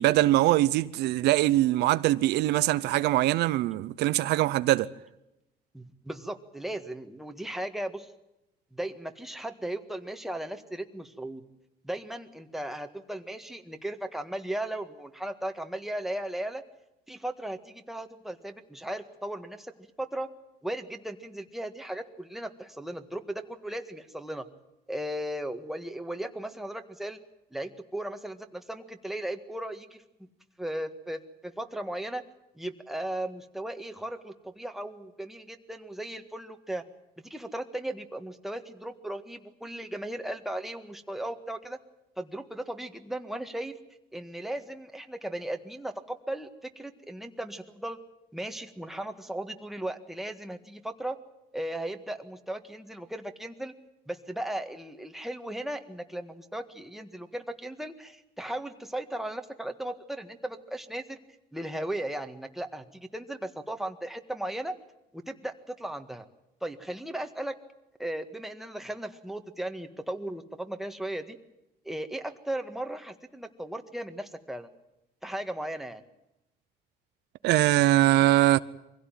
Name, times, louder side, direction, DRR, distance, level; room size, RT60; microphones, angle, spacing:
voice 1, 0.0-4.9 77.4-78.6, right 16 dB, 85° right, 0.7 m, -22 dB
voice 2, 5.7-8.1 8.7-11.4 11.8-16.6 17.1-20.3 20.6-24.4 24.9-27.2 27.5-30.0 30.6-32.2 32.5-36.8 37.2-41.8 42.2-43.8 44.1-46.5 46.7-48.0 48.3-51.2 51.5-53.7 54.1-61.2 61.5-64.7 65.1-66.2 66.6-67.5 68.0-71.4 71.8-74.7 75.2-76.0, right 1 dB, ahead, 1.7 m, -36 dB
24.0 x 16.5 x 9.3 m
cardioid pair, 110°, 17 cm